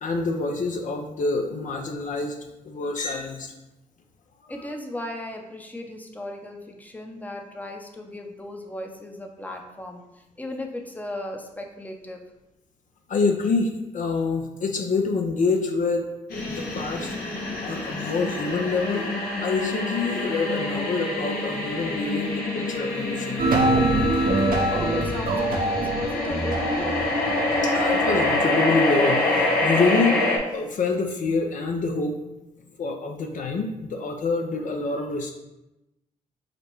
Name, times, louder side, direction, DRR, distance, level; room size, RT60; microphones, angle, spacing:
voice 1, 0.0-2.4 2.6-3.5 4.4-4.5 13.1-16.1 16.3-17.2 17.6-19.1 19.4-23.4 23.7-24.3 27.6-30.2 30.5-32.2 32.8-35.3, left 4 dB, 55° left, 3 dB, 0.6 m, -26 dB
voice 2, 4.5-12.2 24.7-27.0, left 1 dB, 10° left, 3 dB, 0.7 m, -36 dB
sound 1, 16.3-30.4, left 2 dB, 75° left, 1.0 m, -26 dB
sound 2, 23.4-28.4, right 2 dB, 65° right, 0.8 m, -25 dB
5.1 x 2.2 x 4.5 m, 0.95 s
supercardioid pair, 55°, 16 cm